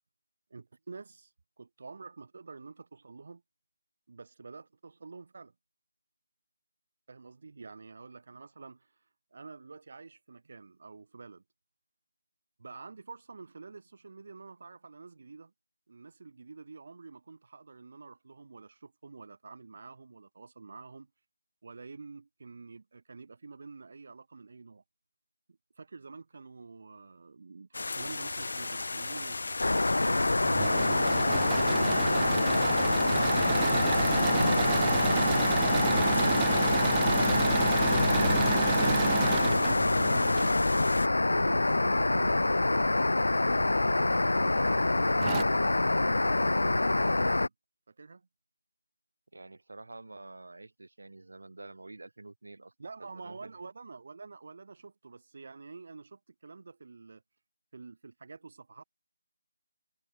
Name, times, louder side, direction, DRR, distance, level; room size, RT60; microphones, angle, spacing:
voice 1, 0.5-1.3 1.6-3.4 4.1-5.5 7.1-8.9 9.3-11.4 12.6-15.5 15.9-21.1 21.6-24.8 25.5-32.4 41.2-45.3 46.1-47.5 47.9-48.3 52.8-57.2 57.7-58.8, right 4 dB, 30° right, 5.6 m, -48 dB
sound 1, 27.7-41.1, left 3 dB, 45° left, 1.3 m, -34 dB
sound 2, 29.6-47.5, left 2 dB, 75° left, 0.7 m, -26 dB
Engine / Mechanisms, 30.2-40.5 42.1-42.9 43.5-43.6 43.9-44.0 44.8-44.9 45.2-45.4, right 22 dB, 10° right, 0.4 m, -33 dB
voice 2, 49.3-52.7 53.0-53.5, right 2 dB, 55° right, 6.8 m, -48 dB
figure-of-eight pair, 180°, 0 cm